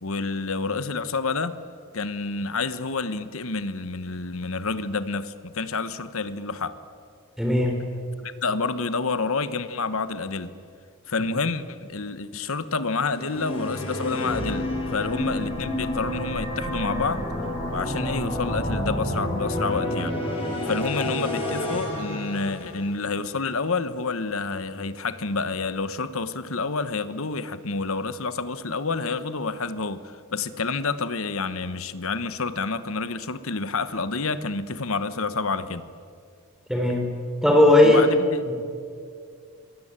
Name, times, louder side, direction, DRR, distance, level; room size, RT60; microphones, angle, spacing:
voice 1, 0.0-1.6 1.9-6.8 8.2-10.5 11.1-17.3 17.7-20.2 20.7-35.8 37.8-38.4, left 4 dB, 65° left, 13 dB, 1.2 m, -29 dB
voice 2, 7.4-7.7 36.7-37.0 37.4-38.0 38.5-38.6, left 1 dB, ahead, 2 dB, 4.2 m, -17 dB
sound 1, 12.9-23.1, left 1 dB, 25° left, 7.6 m, -29 dB
25.5 x 20.5 x 9.0 m, 2.3 s
head